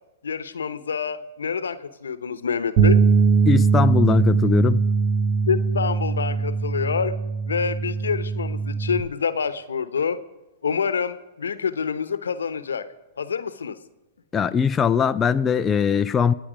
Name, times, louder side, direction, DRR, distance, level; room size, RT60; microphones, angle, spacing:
voice 1, 0.2-3.0 5.5-7.1 7.5-10.2 10.6-12.9 13.2-13.8, left 6 dB, 90° left, 1.0 m, -27 dB
sound 1, 2.8-9.0, right 5 dB, 45° right, 1.0 m, -21 dB
voice 2, 3.5-4.8 14.3-16.3, left 7 dB, 20° left, 0.5 m, -21 dB
26.5 x 9.3 x 5.1 m
hypercardioid pair, 125°, 0 cm